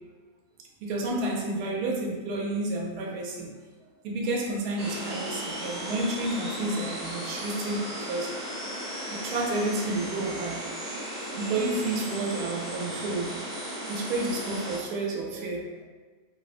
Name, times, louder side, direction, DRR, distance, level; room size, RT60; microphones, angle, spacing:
voice 1, 0.8-3.6 4.0-8.3 9.1-10.7 11.4-13.4 13.9-15.7, right 2 dB, 85° right, -1 dB, 1.1 m, -30 dB
sound 1, 4.8-14.8, right 1 dB, 30° right, 1.0 m, -36 dB
3.1 x 2.0 x 2.4 m, 1.3 s
omnidirectional pair, 1.6 m